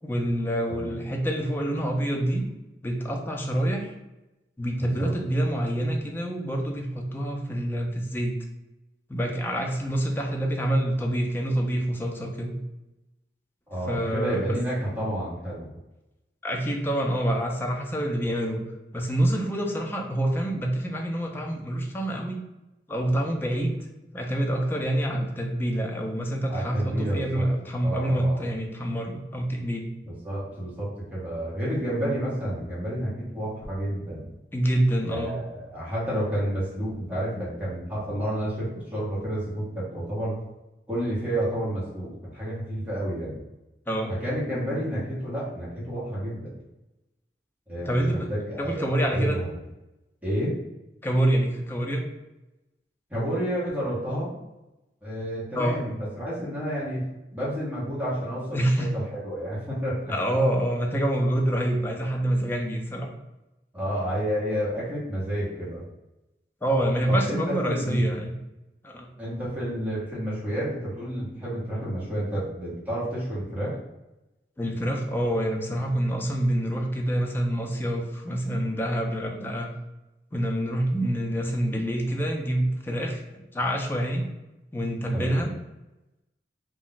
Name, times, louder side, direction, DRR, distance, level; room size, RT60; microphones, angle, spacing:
voice 1, 0.0-2.4 2.8-3.9 4.6-8.3 9.1-12.6 13.9-14.5 16.4-18.6 18.9-22.4 22.9-23.8 24.1-29.9 34.5-35.4 43.9-44.1 47.8-48.3 48.6-49.4 51.0-52.0 55.6-55.8 58.5-58.9 60.1-63.1 66.6-68.3 68.8-69.1 74.6-79.7 80.3-84.3 84.7-85.5, right 1 dB, 10° left, 1 dB, 0.4 m, -26 dB
voice 2, 0.7-1.0 4.8-5.1 13.7-15.7 26.5-27.5 27.8-28.5 30.1-34.3 35.1-40.4 40.9-43.4 44.2-46.5 47.7-49.5 50.2-50.5 53.1-54.3 55.0-57.1 57.3-60.1 63.7-65.8 67.1-68.1 69.2-73.7 85.1-85.4, equal, 10° right, -9 dB, 0.9 m, -30 dB
2.3 x 2.0 x 3.8 m, 0.97 s
head